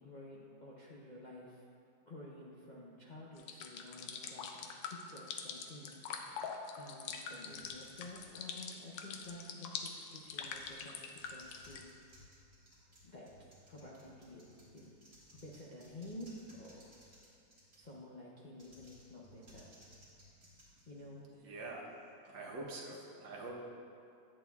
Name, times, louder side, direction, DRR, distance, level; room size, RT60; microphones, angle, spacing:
voice 1, 0.0-1.6 2.1-4.6 4.8-6.4 6.8-12.3 13.0-14.5 14.7-14.9 15.4-16.3 16.6-16.9 17.7-19.7 20.9-21.2, left 1 dB, 70° left, -6 dB, 0.4 m, -51 dB
sound 1, 3.4-11.8, left 6 dB, 85° left, 1.3 m, -44 dB
sound 2, 7.4-9.5 10.1-18.0 18.5-21.4, equal, 35° right, 2.3 m, -62 dB
voice 2, 21.3-21.9 22.2-23.5, right 2 dB, 85° right, -2 dB, 1.7 m, -45 dB
10.5 x 8.5 x 2.3 m, 2.4 s
omnidirectional pair, 2.0 m